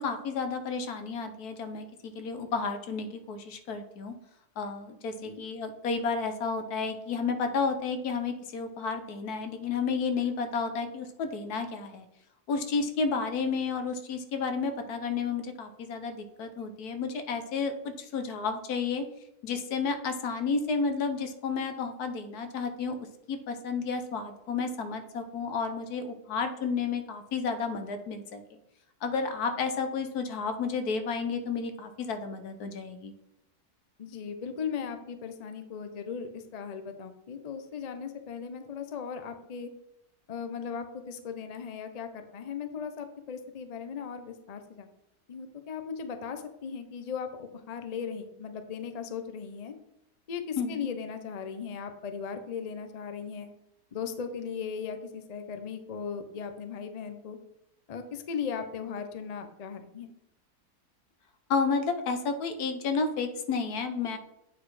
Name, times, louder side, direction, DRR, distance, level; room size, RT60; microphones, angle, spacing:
voice 1, 0.0-4.1 4.6-12.1 12.5-17.7 18.0-19.0 19.4-23.0 23.3-28.4 29.0-33.1 50.6-50.9 61.5-64.2, left 5 dB, 80° left, 7 dB, 1.4 m, -31 dB
voice 2, 34.0-39.7 40.3-44.9 45.3-49.7 50.3-53.5 53.9-57.4 57.9-60.1, left 6 dB, 50° left, 8 dB, 0.4 m, -37 dB
8.4 x 4.1 x 4.8 m, 0.83 s
omnidirectional pair, 1.6 m